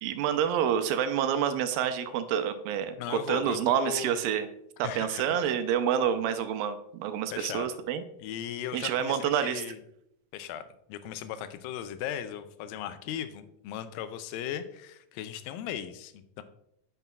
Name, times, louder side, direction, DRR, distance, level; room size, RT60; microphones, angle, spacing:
voice 1, 0.0-4.5 4.8-8.0 8.7-9.6, right 9 dB, 85° right, 10 dB, 2.3 m, -28 dB
voice 2, 3.0-4.2 4.8-5.4 7.3-7.7 8.2-9.8 10.3-10.6 10.9-16.4, left 10 dB, 90° left, 11 dB, 2.3 m, -37 dB
9.1 x 5.8 x 2.3 m, 0.76 s
omnidirectional pair, 4.0 m